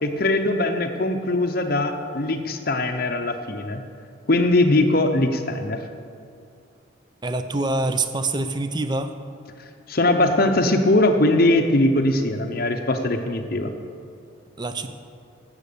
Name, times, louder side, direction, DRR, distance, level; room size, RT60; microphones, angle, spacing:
voice 1, 0.0-3.8 4.3-5.8 9.9-13.7, left 2 dB, 50° left, 5 dB, 0.7 m, -21 dB
voice 2, 7.2-9.1 14.6-14.9, right 2 dB, 20° right, 9 dB, 0.6 m, -25 dB
12.0 x 8.2 x 6.7 m, 2.3 s
head